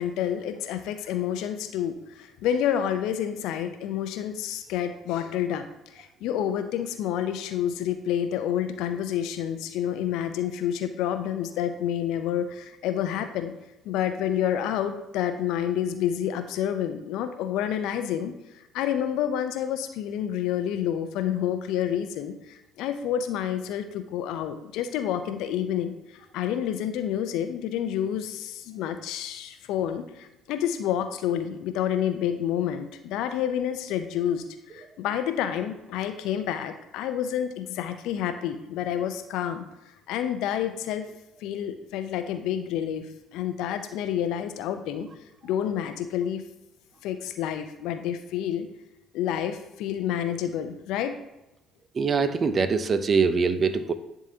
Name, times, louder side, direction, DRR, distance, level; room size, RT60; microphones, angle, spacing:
voice 1, 0.0-5.6 5.9-13.5 13.8-18.3 18.7-34.4 34.7-39.6 40.1-41.0 41.4-43.1 43.3-45.1 45.4-46.4 47.0-48.7 49.1-51.1, left 10 dB, 70° left, 9 dB, 0.5 m, -29 dB
voice 2, 52.0-53.9, right 5 dB, 45° right, 11 dB, 0.6 m, -23 dB
10.5 x 3.7 x 2.8 m, 0.93 s
hypercardioid pair, 55°, 0 cm